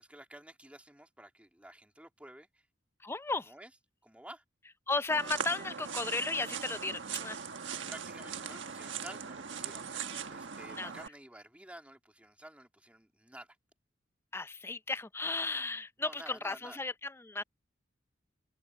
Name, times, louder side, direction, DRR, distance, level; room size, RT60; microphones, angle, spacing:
voice 1, 0.0-2.7 3.3-3.7 4.0-4.4 7.9-13.6 16.0-16.8, right 1 dB, 5° right, 2.4 m, -51 dB
voice 2, 3.0-3.5 4.9-7.4 10.8-10.9 14.3-17.4, left 3 dB, 15° left, 0.5 m, -34 dB
sound 1, 5.1-11.1, right 6 dB, 75° right, 1.4 m, -40 dB
head